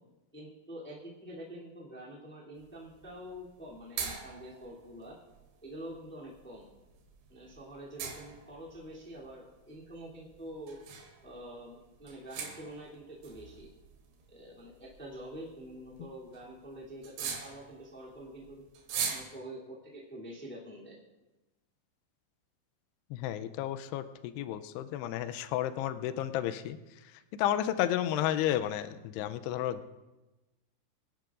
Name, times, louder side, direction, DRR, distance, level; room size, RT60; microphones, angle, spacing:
voice 1, 0.3-5.1 5.6-6.7 7.3-10.8 11.2-13.7 14.3-18.6 19.1-21.0, right 1 dB, 5° left, -5 dB, 1.5 m, -46 dB
sound 1, 2.6-19.2, right 6 dB, 85° right, 3.8 m, -44 dB
voice 2, 23.1-26.8 27.4-29.9, left 12 dB, 85° left, 11 dB, 2.6 m, -32 dB
25.5 x 10.5 x 2.5 m, 1.1 s
omnidirectional pair, 4.9 m